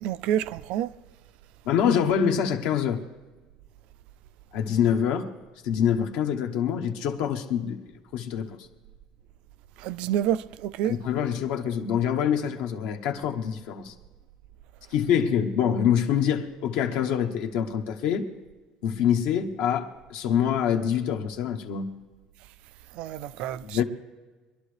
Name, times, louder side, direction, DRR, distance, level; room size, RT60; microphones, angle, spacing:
voice 1, 0.0-0.9 9.8-10.9 23.0-23.6, right 11 dB, 60° right, 0.4 m, -28 dB
voice 2, 1.6-3.0 4.5-5.3 5.6-7.8 8.1-8.5 10.8-13.9 14.9-18.3 18.8-21.9 23.6-23.8, left 8 dB, 70° left, 1.0 m, -25 dB
22.5 x 11.5 x 3.3 m
cardioid pair, 165°, 2 cm